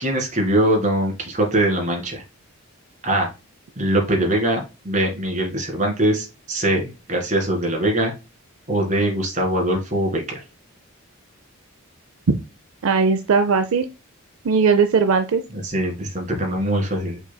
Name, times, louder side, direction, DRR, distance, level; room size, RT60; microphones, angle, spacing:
voice 1, 0.0-2.2 3.0-3.3 3.8-8.1 8.7-10.2 15.5-17.2, right 1 dB, 35° right, 1 dB, 1.7 m, -22 dB
voice 2, 12.8-13.9 14.4-15.4, right 5 dB, 65° right, 8 dB, 0.5 m, -18 dB
5.9 x 4.0 x 2.2 m, 0.28 s
head